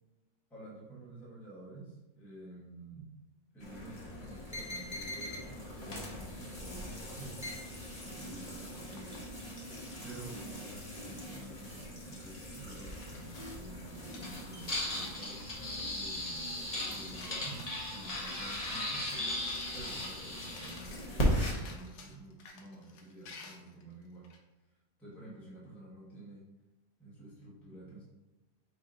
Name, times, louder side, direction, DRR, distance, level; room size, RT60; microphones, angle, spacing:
voice 1, 0.5-3.1 3.5-7.3 8.0-9.2 10.0-16.4 16.9-17.6 17.9-19.1 19.7-21.2 21.5-24.4 25.0-26.4 27.0-28.0, right 2 dB, ahead, -8 dB, 1.0 m, -50 dB
sound 1, 3.6-21.5, left 1 dB, 30° left, 0.7 m, -38 dB
sound 2, 7.6-9.2 9.6-9.7 10.0-10.5 11.6-12.2 12.6-14.7 15.1-15.2 15.4-16.6 16.9-18.3 18.8-18.9 19.2-24.4, left 4 dB, 85° left, 1.2 m, -54 dB
5.2 x 2.7 x 3.8 m, 1.1 s
omnidirectional pair, 1.7 m